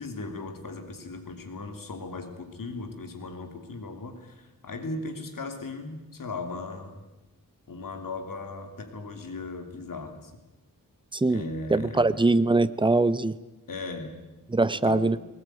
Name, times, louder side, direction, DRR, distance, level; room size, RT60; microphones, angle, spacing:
voice 1, 0.0-7.0 7.7-10.3 11.3-12.2 13.7-14.2 14.7-15.1, left 3 dB, 65° left, 6 dB, 3.1 m, -37 dB
voice 2, 11.7-13.3 14.5-15.2, right 2 dB, 15° right, 15 dB, 0.7 m, -22 dB
19.5 x 19.5 x 9.2 m, 1.1 s
wide cardioid pair, 125°, 35 cm